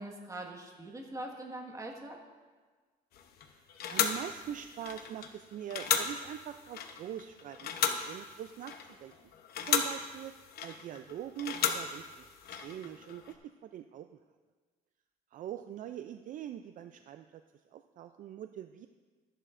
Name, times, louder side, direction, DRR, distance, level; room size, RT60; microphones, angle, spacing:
voice 1, 0.0-2.2, right 1 dB, 20° right, 0 dB, 1.6 m, -42 dB
sound 1, 3.1-13.3, left 8 dB, 65° left, 0.9 m, -35 dB
voice 2, 3.5-9.1 9.6-10.3 10.6-13.4 13.6-14.1 15.3-17.4 17.7-18.9, right 10 dB, 50° right, 8 dB, 0.4 m, -43 dB
13.5 x 11.0 x 2.6 m, 1.4 s
cardioid pair, 110°, 17 cm